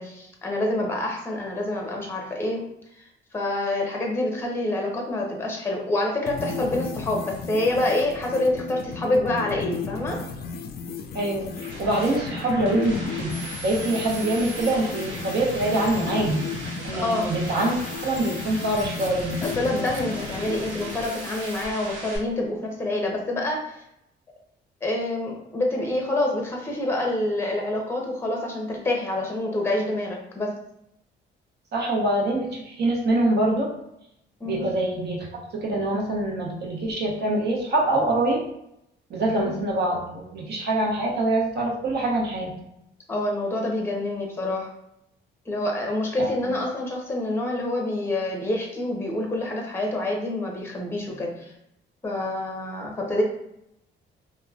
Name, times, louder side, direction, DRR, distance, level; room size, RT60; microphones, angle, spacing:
voice 1, 0.0-2.6 3.0-10.2 16.9-17.3 19.4-23.8 24.8-30.6 34.4-34.7 39.4-39.5 43.1-44.7 45.5-51.5 52.0-53.2, left 1 dB, 10° left, 0 dB, 0.7 m, -27 dB
sound 1, 6.3-21.0, left 5 dB, 55° left, 0.4 m, -35 dB
voice 2, 11.1-13.3 13.6-16.4 16.8-17.8 18.0-19.3 31.7-33.7 34.4-38.4 39.1-42.5 46.2-46.5, right 1 dB, 60° right, -2 dB, 0.9 m, -24 dB
sound 2, 11.2-22.2, right 1 dB, 90° right, 0.9 m, -39 dB
sound 3, 13.3-21.9, equal, 40° right, 0.6 m, -43 dB
2.9 x 2.2 x 2.3 m, 0.80 s
cardioid pair, 90°, 20 cm